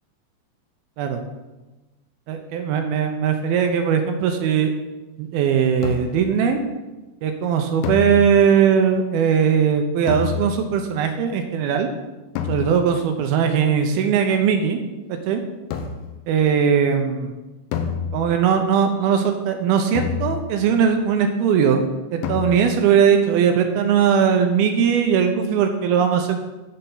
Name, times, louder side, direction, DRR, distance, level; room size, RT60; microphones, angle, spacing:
voice 1, 2.3-4.7 5.2-6.6 7.2-11.9 12.5-14.8 15.1-15.4 16.3-17.3 18.1-21.8 22.1-26.5, right 7 dB, 80° right, 5 dB, 2.3 m, -19 dB
sound 1, 5.8-6.4 7.8-8.7 10.1-10.8 12.4-13.1 15.7-16.3 17.7-18.6 19.9-20.7 22.2-22.9, left 7 dB, 75° left, 2.4 m, -29 dB
13.0 x 5.6 x 3.9 m, 1.1 s
omnidirectional pair, 4.9 m